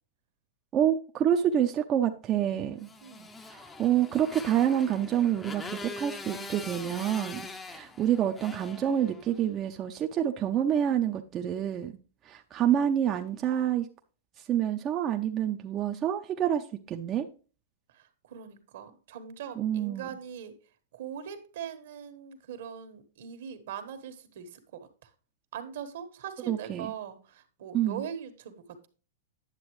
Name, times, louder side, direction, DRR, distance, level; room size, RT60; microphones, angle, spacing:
voice 1, 0.7-2.9 3.5-12.0 12.3-13.9 14.5-17.3 19.6-20.1 26.5-26.9 27.7-28.0, right 10 dB, 30° right, 0.6 m, -27 dB
Motorcycle, 2.8-9.5, left 3 dB, 15° left, 0.7 m, -43 dB
voice 2, 3.0-3.3 17.9-20.5 20.9-25.1 25.5-28.9, right 8 dB, 70° right, 1.4 m, -41 dB
9.8 x 6.9 x 3.1 m
hypercardioid pair, 140°, 0 cm